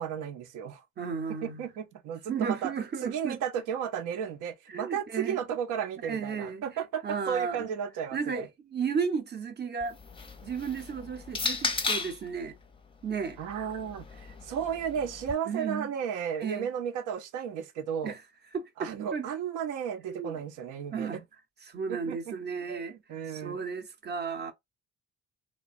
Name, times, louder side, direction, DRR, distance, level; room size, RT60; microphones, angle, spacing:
voice 1, 0.0-0.8 1.4-2.7 3.0-8.5 13.4-18.1 18.8-21.2 21.9-22.2 22.7-22.8 23.1-23.6, right 8 dB, 90° right, 0.6 m, -34 dB
voice 2, 1.0-1.6 2.3-3.4 4.7-5.4 6.0-6.6 7.0-7.7 8.1-10.0 10.4-12.6 13.0-13.4 15.5-15.9 16.4-16.7 18.0-18.2 18.5-19.3 20.1-20.3 20.9-21.2 21.6-23.0 23.3-24.5, right 6 dB, 35° right, 0.6 m, -34 dB
sound 1, 9.8-12.3 13.2-15.3, left 3 dB, 15° left, 0.5 m, -35 dB
3.0 x 2.1 x 2.4 m
cardioid pair, 90°, 30 cm